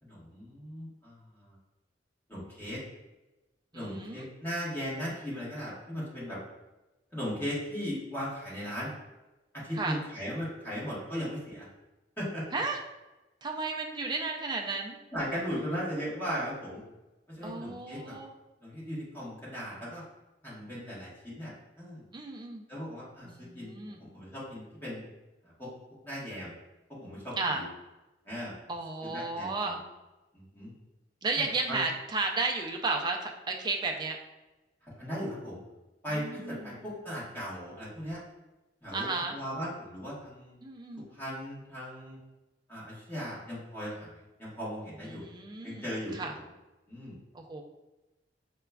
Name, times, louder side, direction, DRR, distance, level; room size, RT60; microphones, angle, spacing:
voice 1, 0.0-1.5 2.3-2.8 3.7-6.4 7.1-8.9 9.5-11.7 12.2-12.6 15.1-16.8 17.3-18.2 18.6-20.0 20.4-22.0 22.7-23.7 24.0-25.0 25.4-25.7 26.0-26.5 26.9-27.7 28.2-28.5 29.0-29.8 30.3-30.7 31.3-31.8 34.8-35.6 36.0-38.2 38.8-40.6 41.1-42.2 42.7-45.2 45.6-46.4 46.9-47.2, equal, 10° left, -8 dB, 1.1 m, -38 dB
voice 2, 3.7-4.3 9.8-10.0 12.5-12.8 13.4-15.0 17.4-18.3 22.1-22.6 23.2-24.0 27.4-27.6 28.7-29.8 31.2-34.2 36.1-36.7 38.9-39.3 40.6-41.1 45.1-45.8 46.2-46.3 47.3-47.6, right 3 dB, 25° right, 1 dB, 0.3 m, -33 dB
4.8 x 2.2 x 2.3 m, 1.0 s
head